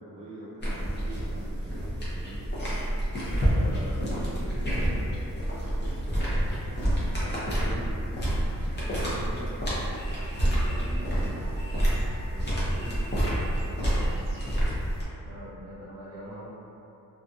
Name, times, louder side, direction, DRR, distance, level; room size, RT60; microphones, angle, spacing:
voice 1, 0.0-11.6 12.3-14.2, right 1 dB, 20° right, -7 dB, 0.3 m, -44 dB
sound 1, 0.6-15.0, equal, 30° left, 0.6 m, -28 dB
sound 2, 9.8-14.7, equal, 65° left, 0.8 m, -48 dB
voice 2, 15.2-16.5, equal, 60° right, -9 dB, 0.9 m, -43 dB
2.5 x 2.3 x 2.6 m, 2.8 s
wide cardioid pair, 125°, 35 cm